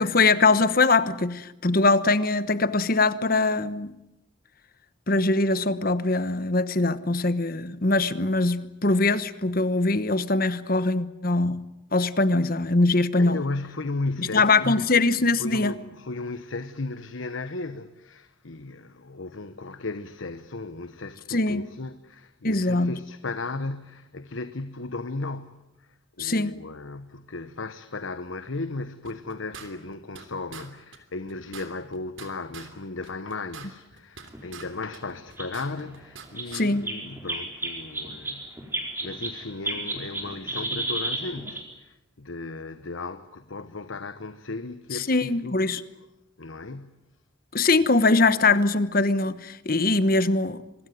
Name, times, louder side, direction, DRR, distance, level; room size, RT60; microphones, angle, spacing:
voice 1, 0.0-3.9 5.1-11.6 11.9-13.4 14.3-15.8 21.3-21.7 22.4-22.9 26.2-26.6 36.5-36.9 44.9-45.8 47.5-50.6, left 3 dB, 45° left, 1.1 m, -22 dB
voice 2, 13.2-14.9 15.4-25.9 26.2-38.7 39.0-46.1 46.4-47.0, left 3 dB, 75° left, 1.1 m, -35 dB
sound 1, 29.0-30.3 30.5-30.7 30.9-31.0 31.3-32.7 33.0-34.7 34.9-36.3 36.5-36.7, right 6 dB, 75° right, 3.2 m, -43 dB
sound 2, 34.3-34.4 35.1-35.2 35.4-35.5 35.8-35.9 36.4-36.5 36.8-39.4 39.6-41.6, right 2 dB, 10° right, 4.5 m, -31 dB
25.0 x 21.0 x 9.3 m
head